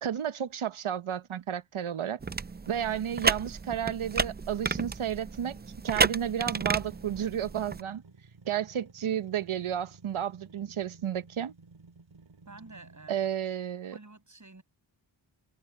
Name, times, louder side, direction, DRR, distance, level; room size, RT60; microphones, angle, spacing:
voice 1, 0.0-2.2 2.7-5.6 5.8-8.0 8.5-11.5 13.1-14.0, right 9 dB, 85° right, 0.9 m, -32 dB
sound 1, 2.2-7.8, right 4 dB, 20° right, 0.5 m, -32 dB
sound 2, 6.7-13.5, right 4 dB, 65° right, 3.9 m, -55 dB
voice 2, 12.5-13.2 13.9-14.6, right 2 dB, 35° right, 7.6 m, -49 dB
wide cardioid pair, 55°, 48 cm